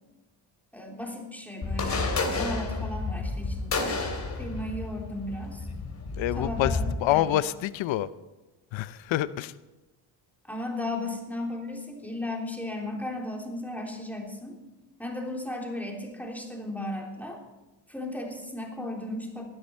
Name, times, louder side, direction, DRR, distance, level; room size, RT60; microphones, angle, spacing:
voice 1, 0.7-4.1 4.4-5.7 6.3-7.3 10.4-14.6 15.0-17.4 17.9-19.4, left 1 dB, 5° left, 0 dB, 3.2 m, -35 dB
sound 1, 1.6-6.9, left 3 dB, 35° left, 3.3 m, -31 dB
voice 2, 6.2-8.1 8.7-9.5, left 13 dB, 80° left, 15 dB, 0.7 m, -27 dB
19.0 x 13.0 x 4.5 m, 1.1 s
cardioid pair, 100°, 45 cm